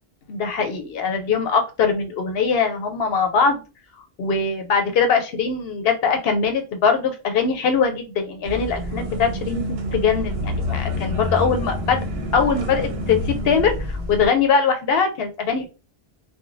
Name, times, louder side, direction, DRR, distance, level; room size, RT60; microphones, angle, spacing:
voice 1, 0.3-3.6 4.2-12.0 12.3-15.7, left 5 dB, 75° left, 6 dB, 0.8 m, -21 dB
sound 1, 8.4-14.3, left 1 dB, 75° right, 0.9 m, -27 dB
2.5 x 2.2 x 3.0 m, 0.31 s
omnidirectional pair, 1.0 m